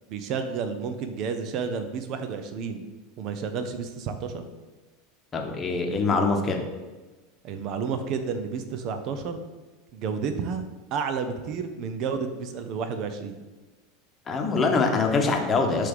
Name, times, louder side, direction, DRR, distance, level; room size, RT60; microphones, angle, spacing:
voice 1, 0.1-2.8 3.2-4.5 7.4-9.4 9.9-10.6 10.9-13.4, right 6 dB, 45° right, 8 dB, 0.5 m, -31 dB
voice 2, 5.3-6.6 14.3-15.9, left 3 dB, 25° left, 3 dB, 0.9 m, -24 dB
5.4 x 3.4 x 5.3 m, 1.2 s
figure-of-eight pair, 80°, 0 cm